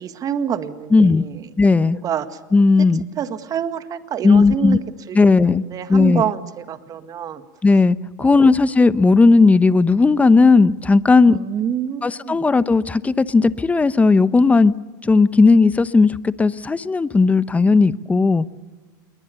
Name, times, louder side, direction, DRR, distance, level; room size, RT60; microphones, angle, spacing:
voice 1, 0.0-1.5 2.0-2.4 3.2-4.8 5.1-7.4 8.2-8.4 11.3-12.4, right 8 dB, 35° right, 10 dB, 1.8 m, -27 dB
voice 2, 0.9-1.3 1.6-2.0 2.5-3.1 4.2-4.8 5.1-5.6 5.9-6.2 7.6-11.4 12.0-14.7 15.0-18.5, left 3 dB, 15° left, 16 dB, 0.9 m, -15 dB
28.0 x 22.0 x 7.0 m, 1.3 s
hypercardioid pair, 105°, 10 cm